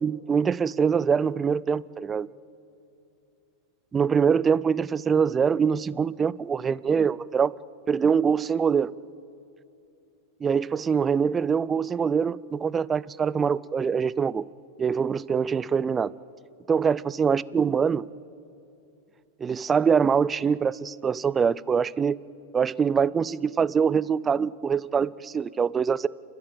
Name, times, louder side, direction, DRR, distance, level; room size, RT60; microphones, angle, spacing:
voice 1, 0.0-2.3 3.9-7.5 7.9-8.9 10.4-14.4 14.8-16.1 16.7-18.1 19.4-22.2 22.5-26.1, right 6 dB, 20° right, 20 dB, 0.5 m, -24 dB
29.0 x 13.0 x 7.9 m, 2.7 s
hypercardioid pair, 115°, 0 cm